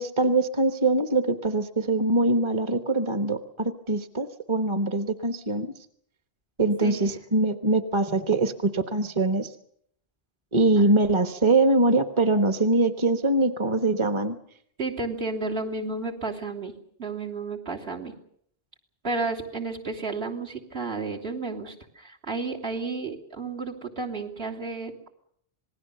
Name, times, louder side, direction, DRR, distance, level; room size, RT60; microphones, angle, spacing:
voice 1, 0.0-5.7 6.6-9.5 10.5-14.4, right 2 dB, 30° right, 9 dB, 1.2 m, -23 dB
voice 2, 14.8-16.7 17.0-18.1 19.0-25.1, right 3 dB, 65° right, -1 dB, 3.4 m, -32 dB
27.0 x 20.0 x 6.9 m, 0.67 s
omnidirectional pair, 1.1 m